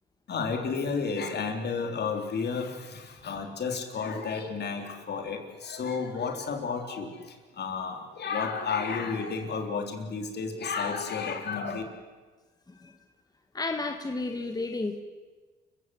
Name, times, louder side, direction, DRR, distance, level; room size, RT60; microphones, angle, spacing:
voice 1, 0.3-11.8, left 5 dB, 55° left, 4 dB, 3.6 m, -32 dB
voice 2, 12.7-13.0 13.5-15.0, left 3 dB, 20° left, 6 dB, 1.7 m, -32 dB
29.0 x 16.0 x 7.9 m, 1.4 s
cardioid pair, 90°, 20 cm